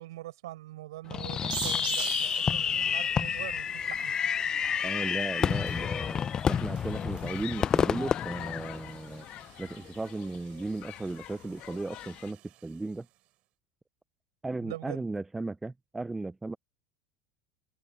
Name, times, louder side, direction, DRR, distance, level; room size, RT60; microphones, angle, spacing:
voice 1, 0.0-4.1 14.6-15.0, right 16 dB, 80° right, 5.1 m, -43 dB
Fireworks, 1.1-9.2, left 7 dB, 30° left, 0.6 m, -29 dB
sound 1, 1.5-12.8, right 17 dB, 55° right, 5.5 m, -46 dB
Human group actions, 4.6-12.3, left 15 dB, 55° left, 1.7 m, -45 dB
voice 2, 4.8-6.2 6.5-9.3 9.6-13.1 14.4-16.6, right 2 dB, 10° right, 0.5 m, -36 dB
hypercardioid pair, 90°, 2 cm